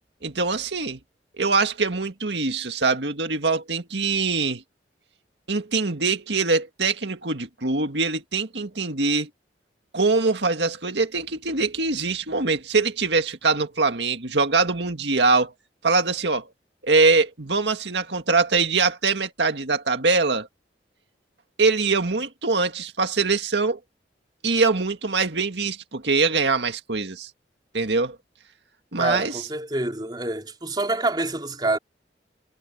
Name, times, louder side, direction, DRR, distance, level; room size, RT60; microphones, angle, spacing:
voice 1, 0.2-1.0 1.4-4.6 5.5-9.3 9.9-15.5 15.8-16.5 16.8-20.5 21.6-23.8 24.4-27.3 27.7-28.2 28.9-29.3, right 4 dB, 75° right, 2.0 m, -23 dB
voice 2, 29.0-31.8, right 2 dB, 25° right, 3.7 m, -27 dB
head